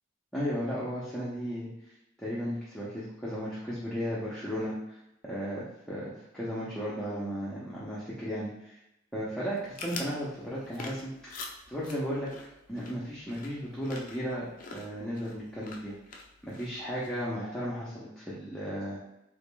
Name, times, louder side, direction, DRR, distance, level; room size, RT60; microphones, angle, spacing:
voice 1, 0.3-1.7 2.2-8.8 9.1-11.4 11.7-12.3 12.7-14.5 14.7-15.9 16.4-19.0, equal, ahead, -9 dB, 0.6 m, -35 dB
sound 1, 9.5-17.3, left 3 dB, 45° left, 0.4 m, -46 dB
3.5 x 3.3 x 2.2 m, 0.87 s
head